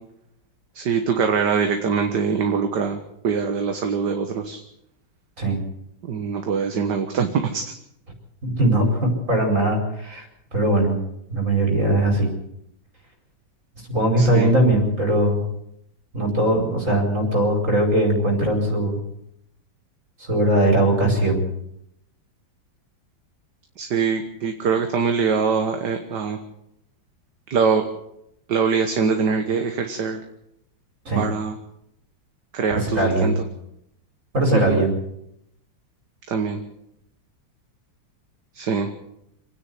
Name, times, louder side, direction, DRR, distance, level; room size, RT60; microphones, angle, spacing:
voice 1, 0.8-4.6 6.1-7.6 14.2-14.5 23.8-26.4 27.5-27.8 28.5-30.2 31.2-31.5 32.5-33.3 34.5-34.8 36.3-36.6 38.6-38.9, right 5 dB, 60° right, 5 dB, 2.0 m, -23 dB
voice 2, 8.4-10.3 10.5-11.0 11.3-12.3 13.9-15.4 16.1-19.0 20.2-21.5 31.1-31.2 32.7-33.4 34.3-34.9, right 1 dB, 40° right, 2 dB, 5.3 m, -20 dB
27.0 x 9.9 x 9.7 m, 0.79 s
omnidirectional pair, 2.1 m